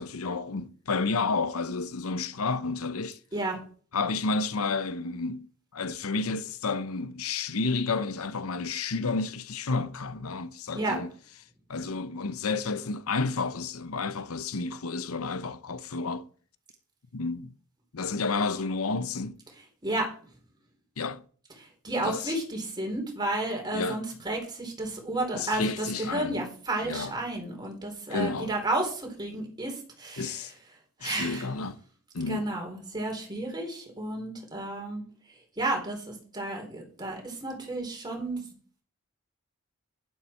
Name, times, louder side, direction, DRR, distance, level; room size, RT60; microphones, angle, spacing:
voice 1, 0.0-3.2 3.9-5.5 5.7-11.1 11.7-16.3 17.1-17.5 17.9-19.4 21.0-21.2 22.0-22.3 23.7-24.0 25.3-26.5 26.8-27.1 28.1-28.5 30.2-30.5 31.0-31.8 32.1-32.5, left 4 dB, 85° left, 0.8 m, -31 dB
voice 2, 21.6-30.5 31.0-31.5 32.3-35.0 35.6-38.5, right 2 dB, 20° right, 4.2 m, -32 dB
11.5 x 11.5 x 4.6 m
head